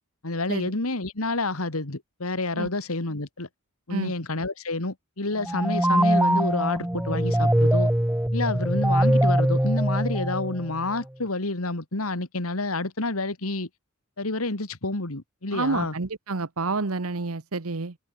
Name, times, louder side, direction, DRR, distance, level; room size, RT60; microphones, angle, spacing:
voice 1, 0.2-3.5 3.9-7.9 8.3-13.7 14.2-15.9, left 2 dB, 75° left, 2.5 m, -29 dB
sound 1, 5.4-10.9, right 1 dB, 5° right, 0.8 m, -22 dB
voice 2, 15.5-17.9, right 3 dB, 75° right, 1.2 m, -29 dB
open air
head